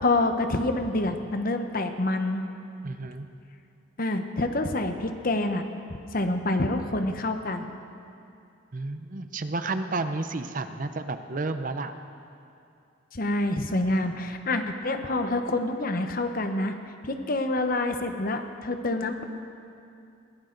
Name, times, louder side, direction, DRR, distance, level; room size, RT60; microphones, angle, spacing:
voice 1, 0.0-2.4 4.0-5.6 5.9-7.7 13.1-16.7 17.1-19.2, left 2 dB, 45° left, 7 dB, 0.9 m, -27 dB
voice 2, 2.8-3.3 8.7-11.9, right 3 dB, 40° right, 9 dB, 0.6 m, -31 dB
21.0 x 16.0 x 3.9 m, 2.6 s
head